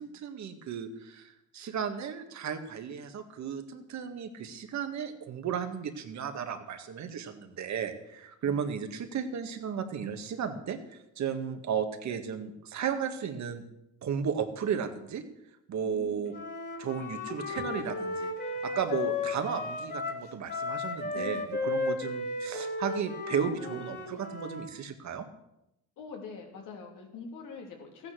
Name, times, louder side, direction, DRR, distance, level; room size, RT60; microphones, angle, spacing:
voice 1, 0.0-13.6 14.0-15.2 15.7-16.3 16.8-18.3 18.6-25.3, right 7 dB, 65° right, 7 dB, 1.8 m, -34 dB
voice 2, 15.8-16.3 21.1-21.5 23.4-24.2 26.0-28.1, left 4 dB, 90° left, 2 dB, 2.9 m, -44 dB
Wind instrument woodwind instrument, 16.3-24.7, left 3 dB, 35° left, 3.0 m, -34 dB
14.5 x 9.7 x 6.3 m, 0.85 s
cardioid pair, 90°, 30 cm